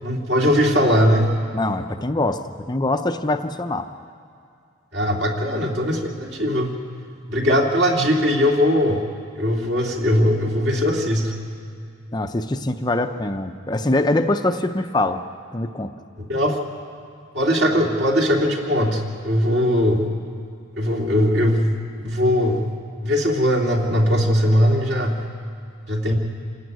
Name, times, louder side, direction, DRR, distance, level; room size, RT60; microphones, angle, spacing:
voice 1, 0.0-1.4 4.9-6.7 7.3-9.0 9.4-11.3 16.3-16.6 17.3-20.1 20.8-21.7 22.0-22.7 23.0-25.2 25.9-26.1, equal, 55° right, 0 dB, 2.7 m, -20 dB
voice 2, 1.5-3.9 12.1-15.2 15.5-15.9, left 2 dB, 20° left, 6 dB, 0.6 m, -23 dB
27.5 x 12.5 x 9.3 m, 2.4 s
head